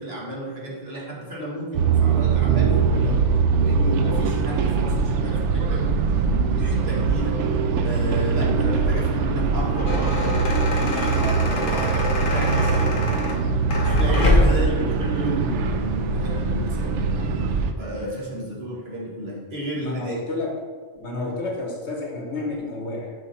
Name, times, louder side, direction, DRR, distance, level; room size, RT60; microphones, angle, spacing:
voice 1, 0.0-3.3 3.5-5.9 6.4-7.4 7.8-12.1 12.3-13.0 13.8-17.4 17.8-20.2, right 1 dB, 60° right, -5 dB, 1.9 m, -32 dB
sound 1, 1.7-17.7, right 5 dB, 90° right, 0.9 m, -22 dB
sound 2, 9.5-14.7, left 1 dB, 50° left, 1.2 m, -24 dB
voice 2, 19.8-20.5 20.9-23.1, left 2 dB, 75° left, 0 dB, 1.6 m, -30 dB
6.5 x 5.2 x 4.2 m, 1.5 s
omnidirectional pair, 1.2 m